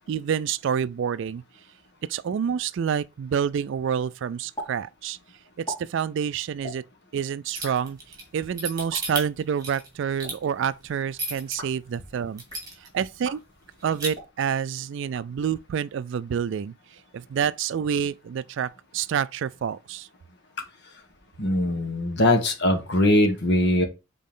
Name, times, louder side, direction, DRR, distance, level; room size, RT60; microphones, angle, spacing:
voice 1, 0.1-1.4 2.1-5.2 5.6-6.8 7.1-8.0 8.3-12.4 12.9-13.4 13.8-16.7 17.1-20.1, right 7 dB, 60° right, 0.3 m, -28 dB
sound 1, 4.6-4.7 5.0-5.1 5.5-5.8 6.6-6.8 7.5-7.8 8.7-9.0 10.0-10.3 11.4-11.8 12.3-12.7 13.2-13.4 14.1-14.3 15.0-15.7, equal, 20° left, 4.1 m, -40 dB
sound 2, 7.5-11.6 12.0-12.1 12.4-13.0 13.3-13.4 13.7-14.1, right 2 dB, 20° right, 2.5 m, -33 dB
voice 2, 21.4-23.8, left 1 dB, 55° left, 1.4 m, -21 dB
7.4 x 4.2 x 3.7 m
head